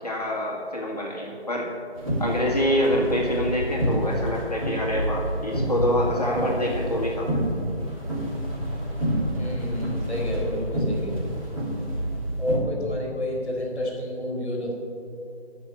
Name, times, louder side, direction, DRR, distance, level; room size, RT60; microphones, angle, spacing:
voice 1, 0.0-1.7 2.2-7.4, equal, 35° left, -3 dB, 1.8 m, -26 dB
sound 1, 1.9-12.6, equal, 30° right, 2.9 m, -28 dB
sound 2, 5.5-10.6, right 1 dB, 60° right, 2.4 m, -38 dB
voice 2, 9.4-11.3 12.4-14.7, left 1 dB, 5° left, -21 dB, 2.0 m, -30 dB
13.0 x 6.1 x 8.0 m, 2.7 s
figure-of-eight pair, 175°, 33 cm